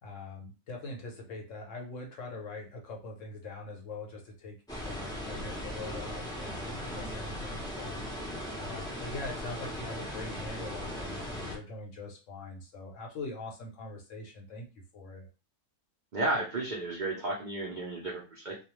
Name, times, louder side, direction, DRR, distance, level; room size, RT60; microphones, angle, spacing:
voice 1, 0.0-14.7 14.9-15.3, left 2 dB, 60° left, -1 dB, 0.9 m, -43 dB
sound 1, 4.7-11.6, equal, 5° left, 0.4 m, -38 dB
voice 2, 16.1-18.6, right 2 dB, 75° right, -3 dB, 0.4 m, -33 dB
2.4 x 2.3 x 3.0 m, 0.32 s
omnidirectional pair, 1.6 m